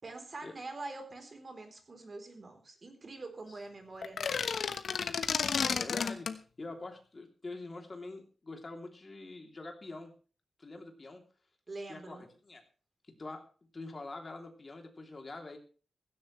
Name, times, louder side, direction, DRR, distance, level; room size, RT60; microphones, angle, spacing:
voice 1, 0.0-4.4 11.7-12.3, right 3 dB, 35° right, 5 dB, 3.7 m, -45 dB
sound 1, 4.0-6.4, left 6 dB, 80° left, 1.2 m, -32 dB
voice 2, 5.6-10.1 10.6-11.2 11.9-12.6 13.2-15.6, left 2 dB, 30° left, 3 dB, 3.0 m, -45 dB
16.5 x 16.0 x 3.2 m, 0.38 s
wide cardioid pair, 150°, 0 cm